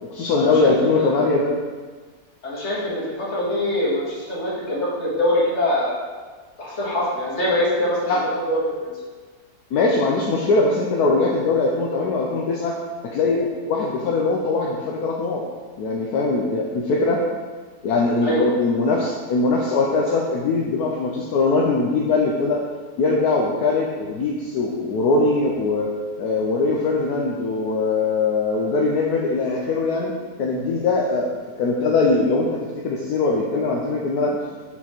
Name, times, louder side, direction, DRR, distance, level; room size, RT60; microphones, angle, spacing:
voice 1, 0.0-1.5 8.1-8.2 9.7-12.7 13.0-15.4 15.8-17.2 17.8-22.6 23.0-25.9 26.2-30.1 30.4-31.3 31.6-34.4, left 3 dB, 75° left, -2 dB, 1.2 m, -21 dB
voice 2, 0.9-1.2 2.4-5.9 6.6-8.2 8.5-8.9 18.2-18.5, left 1 dB, 45° left, -6 dB, 2.0 m, -23 dB
7.2 x 4.3 x 4.4 m, 1.4 s
omnidirectional pair, 1.8 m